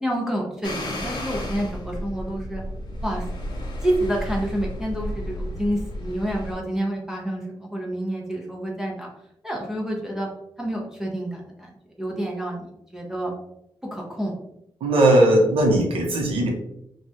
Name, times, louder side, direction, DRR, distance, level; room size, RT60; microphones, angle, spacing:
voice 1, 0.0-2.6 3.0-3.3 3.8-9.1 9.4-10.3 10.6-11.7 12.0-13.3 13.9-14.3, right 1 dB, 5° right, -2 dB, 0.5 m, -28 dB
sound 1, 0.6-6.5, equal, 50° left, 0.6 m, -32 dB
voice 2, 14.8-16.5, right 1 dB, 85° right, 1 dB, 0.8 m, -18 dB
3.1 x 2.3 x 2.6 m, 0.80 s
wide cardioid pair, 160°, 9 cm